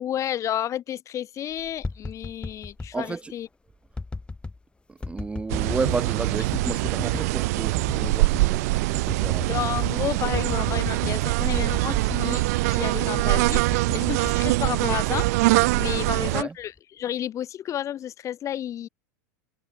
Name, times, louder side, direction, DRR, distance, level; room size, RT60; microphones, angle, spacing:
voice 1, 0.0-3.5 9.5-15.3 15.8-18.9, left 11 dB, 35° left, 2.8 m, -31 dB
sound 1, 1.6-2.9 3.9-4.6 5.0-6.1 6.5-7.3 7.8-8.5 8.8-8.9 9.1-9.9 10.3-11.2 11.6-12.3 12.8-15.9 16.4-16.8, left 3 dB, 10° left, 5.6 m, -35 dB
voice 2, 2.9-3.3 4.9-9.6 16.0-16.5, right 4 dB, 10° right, 0.9 m, -32 dB
sound 2, 5.5-16.4, right 22 dB, 65° right, 0.4 m, -23 dB
hypercardioid pair, 110°, 9 cm